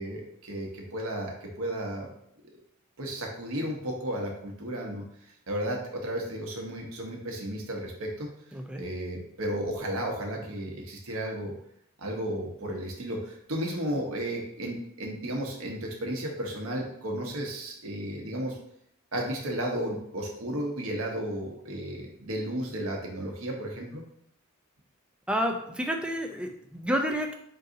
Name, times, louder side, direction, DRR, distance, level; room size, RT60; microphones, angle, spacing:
voice 1, 0.0-2.1 3.0-5.0 5.5-8.3 8.7-11.5 12.0-18.6 19.1-24.0, right 1 dB, 90° right, 0 dB, 0.9 m, -33 dB
voice 2, 8.5-8.8 25.3-27.3, equal, 5° right, 3 dB, 0.3 m, -30 dB
3.9 x 2.6 x 3.8 m, 0.72 s
head